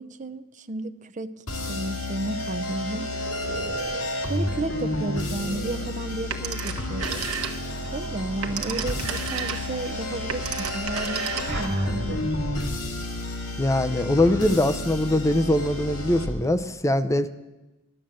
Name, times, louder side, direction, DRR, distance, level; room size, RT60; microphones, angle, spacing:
voice 1, 0.0-3.1 4.3-7.3 7.9-12.4, right 2 dB, 35° right, 0.6 m, -33 dB
sound 1, 1.5-16.3, left 1 dB, 70° left, 2.2 m, -31 dB
sound 2, 2.4-6.6 7.1-12.8, right 1 dB, 55° right, 1.9 m, -39 dB
Telephone, 6.3-7.9 8.2-11.8, right 7 dB, 75° right, 1.2 m, -32 dB
voice 2, 13.6-17.3, left 1 dB, 15° left, 0.6 m, -22 dB
11.5 x 11.0 x 7.6 m
head